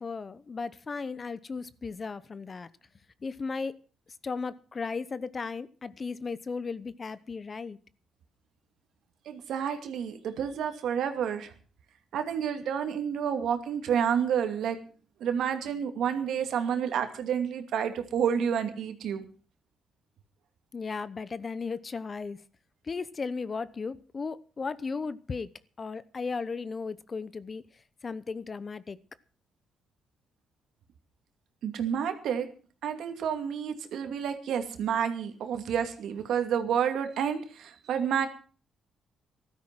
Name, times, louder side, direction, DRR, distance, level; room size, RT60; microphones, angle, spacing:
voice 1, 0.0-2.7 3.2-3.8 4.2-7.8 20.7-22.4 22.9-25.5 25.8-27.6 28.0-29.0, left 4 dB, 35° left, 0.9 m, -35 dB
voice 2, 9.3-11.5 12.1-14.8 15.2-19.2 31.6-32.5 32.8-38.3, right 8 dB, 75° right, 2.5 m, -29 dB
14.5 x 13.0 x 6.1 m
cardioid pair, 90°, 0 cm